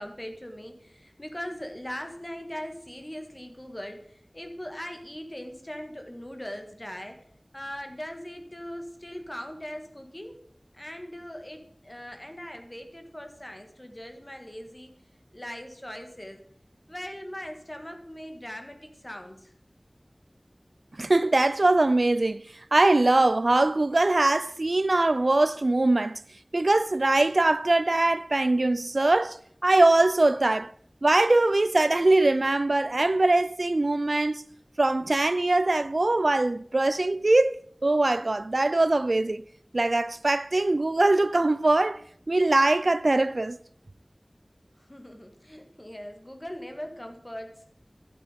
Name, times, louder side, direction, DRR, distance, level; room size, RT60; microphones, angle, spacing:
voice 1, 0.0-7.2 7.5-10.4 10.7-14.9 15.3-16.4 16.9-19.5 44.9-47.7, equal, 25° left, 1.7 m, -40 dB
voice 2, 21.0-22.4 22.7-26.2 26.5-29.4 29.6-30.7 31.0-34.4 34.8-39.4 39.7-42.0 42.3-43.6, right 2 dB, 80° right, 0.3 m, -22 dB
12.0 x 7.6 x 5.0 m
wide cardioid pair, 40°, 0 cm